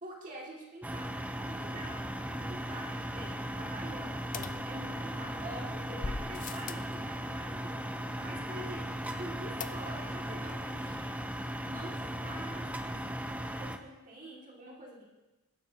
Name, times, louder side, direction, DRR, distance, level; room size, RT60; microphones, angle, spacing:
voice 1, 0.0-1.1 1.4-2.0 2.3-4.2 4.6-7.8 8.2-11.0 11.6-13.0 13.6-15.1, right 1 dB, 35° right, -3 dB, 2.2 m, -46 dB
sound 1, 0.8-13.8, equal, 5° right, 0.6 m, -37 dB
sound 2, 4.3-5.3 6.0-6.9 9.6-10.2 10.5-10.6 10.8-10.9, left 4 dB, 35° left, 0.5 m, -41 dB
21.0 x 12.0 x 2.9 m, 1.0 s
head